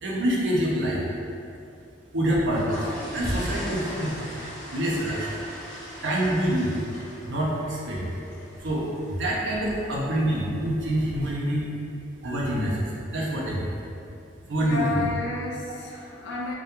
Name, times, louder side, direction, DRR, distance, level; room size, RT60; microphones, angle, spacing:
voice 1, 0.0-1.0 2.1-4.3 4.7-5.3 6.0-6.7 7.3-8.1 8.6-11.7 12.2-13.8 14.5-15.0, right 1 dB, 75° right, -4 dB, 0.5 m, -26 dB
sound 1, 2.3-11.3, equal, 5° left, 0.7 m, -38 dB
voice 2, 14.6-16.5, left 3 dB, 65° left, -2 dB, 0.4 m, -31 dB
2.3 x 2.2 x 2.9 m, 2.7 s
head